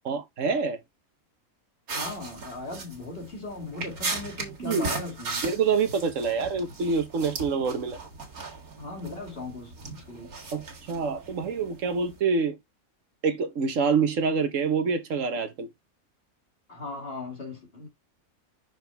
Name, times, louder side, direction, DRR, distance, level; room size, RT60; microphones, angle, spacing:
voice 1, 0.0-0.8 4.6-4.9 5.4-8.0 10.5-12.5 13.2-15.7, right 5 dB, 65° right, 1.4 m, -26 dB
voice 2, 1.9-5.5 8.8-10.5 16.7-17.9, left 2 dB, 40° left, 2.8 m, -38 dB
sound 1, 1.9-12.2, right 3 dB, 90° right, 2.3 m, -37 dB
5.9 x 5.0 x 3.4 m
omnidirectional pair, 1.5 m